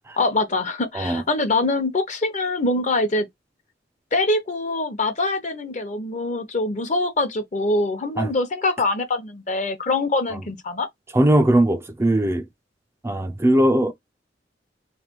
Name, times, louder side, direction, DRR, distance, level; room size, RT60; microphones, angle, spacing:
voice 1, 0.2-3.3 4.1-10.9, left 2 dB, 45° left, 0.9 m, -24 dB
voice 2, 11.1-12.4 13.0-13.9, right 1 dB, 15° right, 0.4 m, -19 dB
3.3 x 3.1 x 4.4 m
head